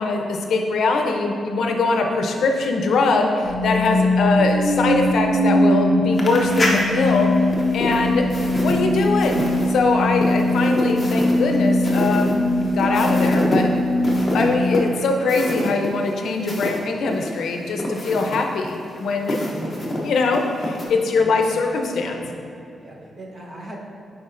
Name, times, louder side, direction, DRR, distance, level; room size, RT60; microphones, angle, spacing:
voice 1, 0.0-13.7 14.3-19.5 20.0-22.2, left 3 dB, 70° left, 3 dB, 0.6 m, -22 dB
sound 1, 3.4-15.6, left 1 dB, 80° right, 1.3 m, -21 dB
sound 2, 6.1-16.8 17.1-20.8, left 1 dB, 15° left, 0.8 m, -28 dB
voice 2, 22.8-23.8, right 1 dB, 35° right, -2 dB, 0.9 m, -38 dB
9.6 x 4.4 x 2.5 m, 2.7 s
wide cardioid pair, 170°, 0 cm